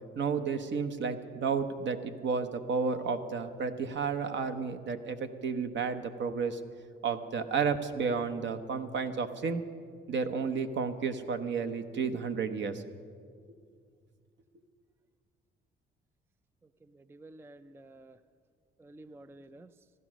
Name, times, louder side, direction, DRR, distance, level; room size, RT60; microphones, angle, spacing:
voice 1, 0.1-6.6 7.0-9.6 10.1-12.8, right 5 dB, 60° right, 9 dB, 1.0 m, -32 dB
voice 2, 16.9-18.2 18.8-19.7, right 2 dB, 10° right, 12 dB, 0.4 m, -51 dB
15.0 x 12.0 x 6.2 m, 2.1 s
cardioid pair, 100°, 21 cm